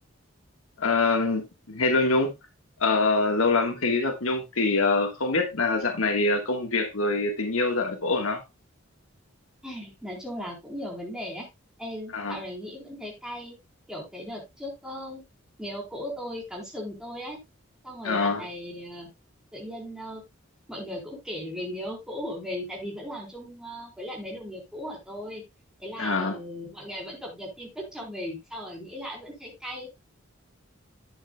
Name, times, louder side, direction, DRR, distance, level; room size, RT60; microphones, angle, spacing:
voice 1, 0.8-2.3 2.8-8.4 12.1-12.4 18.0-18.4 26.0-26.4, left 3 dB, 90° left, 1.5 m, -24 dB
voice 2, 9.6-11.5 11.8-13.6 13.9-15.3 15.6-17.4 17.8-19.1 19.5-20.2 20.7-25.4 25.8-30.0, equal, 5° right, 4.0 m, -37 dB
11.5 x 8.6 x 2.3 m
head